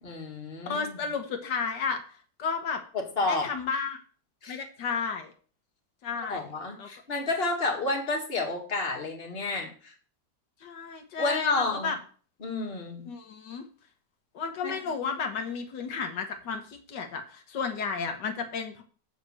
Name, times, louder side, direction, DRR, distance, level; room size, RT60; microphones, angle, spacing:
voice 1, 0.0-1.0 2.9-3.5 4.4-4.5 6.3-9.9 11.2-11.9 12.4-13.0 14.6-14.8, left 3 dB, 35° left, 1 dB, 2.2 m, -30 dB
voice 2, 0.7-2.8 3.3-4.0 4.5-5.3 6.0-6.5 6.8-6.9 10.6-12.0 13.1-13.6 14.3-18.8, left 5 dB, 85° left, 5 dB, 1.8 m, -33 dB
7.3 x 5.9 x 7.6 m, 0.40 s
omnidirectional pair, 1.8 m